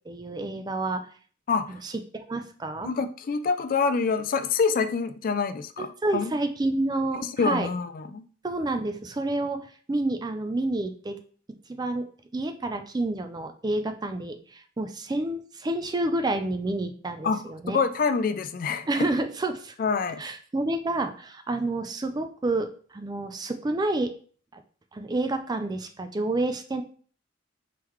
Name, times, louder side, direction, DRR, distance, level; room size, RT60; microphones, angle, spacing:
voice 1, 0.1-1.1 1.8-2.9 5.8-7.7 8.4-11.2 11.7-12.1 12.3-17.8 18.9-19.8 20.2-24.1 24.5-24.6 24.9-26.8, right 2 dB, 20° right, 7 dB, 0.4 m, -29 dB
voice 2, 2.8-5.9 6.1-6.3 7.2-8.2 17.2-17.4 17.7-18.9 19.8-20.2, left 5 dB, 45° left, 11 dB, 0.3 m, -26 dB
4.6 x 3.8 x 3.0 m, 0.44 s
head